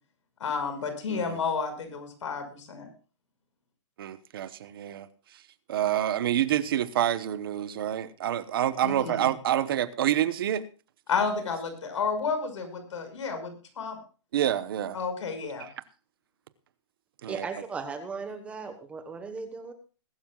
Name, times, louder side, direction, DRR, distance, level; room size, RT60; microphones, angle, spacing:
voice 1, 0.4-2.9 8.8-9.3 11.1-14.0 14.9-15.7, left 5 dB, 85° left, 5.6 m, -31 dB
voice 2, 1.1-1.4 4.0-5.1 5.7-10.7 14.3-15.0 17.2-17.5, right 11 dB, 50° right, 1.0 m, -27 dB
voice 3, 17.2-19.7, right 4 dB, 10° right, 1.2 m, -37 dB
21.5 x 12.0 x 2.4 m
hypercardioid pair, 170°, 15 cm